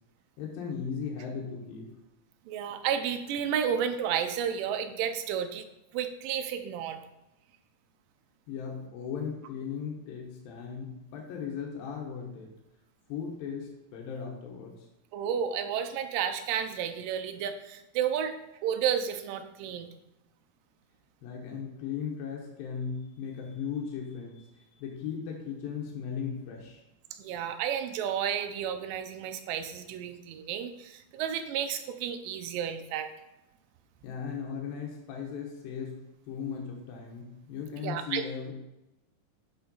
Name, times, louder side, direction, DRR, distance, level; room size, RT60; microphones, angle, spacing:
voice 1, 0.4-1.9 8.5-12.5 13.1-14.9 21.2-26.8 34.0-36.0 36.3-38.5, left 6 dB, 80° left, -1 dB, 2.6 m, -37 dB
voice 2, 2.5-5.7 5.9-7.0 15.1-19.9 27.1-33.1 37.8-38.2, right 8 dB, 80° right, 8 dB, 2.2 m, -32 dB
7.2 x 4.9 x 3.9 m, 0.94 s
omnidirectional pair, 4.1 m